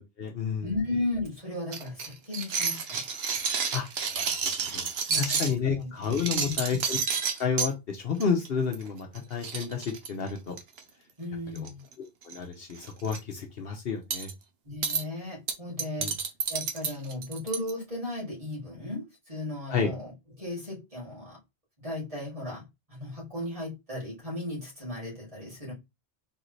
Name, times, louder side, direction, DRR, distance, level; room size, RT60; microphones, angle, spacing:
voice 1, 0.0-0.7 3.7-3.9 4.2-4.9 5.1-7.0 7.4-10.5 11.5-11.7 12.2-14.3 16.0-16.1 19.7-19.9, left 6 dB, 70° left, 1.0 m, -30 dB
voice 2, 0.6-3.0 5.1-5.9 6.3-6.6 11.2-11.8 14.6-16.1 16.5-20.1 20.4-21.4 21.8-25.7, left 2 dB, 35° right, 2.6 m, -35 dB
sound 1, 1.7-5.5 6.0-7.7 8.2-8.5 8.7-8.9 9.1-9.2 9.4-10.8 11.6-11.9 12.2-12.4 12.8-13.2 14.1-14.3 14.8-15.0 15.5-17.7, right 6 dB, 75° right, 1.0 m, -30 dB
4.0 x 3.7 x 3.2 m
omnidirectional pair, 1.1 m